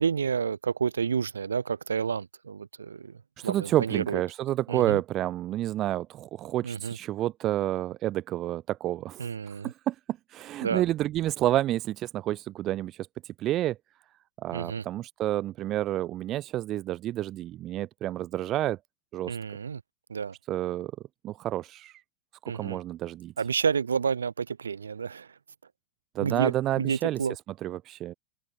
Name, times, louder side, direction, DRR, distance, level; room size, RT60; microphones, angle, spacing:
voice 1, 0.0-4.2 4.7-5.0 6.6-7.0 9.2-9.7 10.6-10.8 14.5-14.8 19.3-19.8 20.1-20.3 22.5-22.8 23.4-25.3 26.2-27.4, right 6 dB, 70° right, 0.7 m, -30 dB
voice 2, 3.4-13.8 14.4-18.8 19.1-19.4 20.5-20.9 21.2-22.0 22.4-23.3 26.1-27.2 27.6-28.1, right 14 dB, 35° right, 0.6 m, -29 dB
open air
figure-of-eight pair, 90°, 0 cm